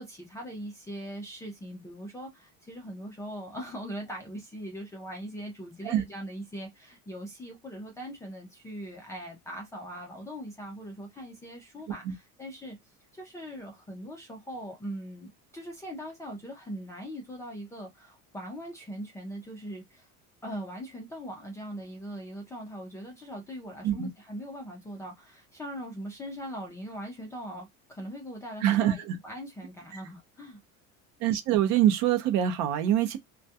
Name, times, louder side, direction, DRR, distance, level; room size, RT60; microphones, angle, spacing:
voice 1, 0.0-12.8 13.1-20.1 20.4-30.6, equal, 10° left, 0.3 m, -41 dB
voice 2, 28.6-29.2 31.2-33.2, right 11 dB, 55° right, 0.6 m, -24 dB
2.2 x 2.2 x 2.7 m
cardioid pair, 175°, 34 cm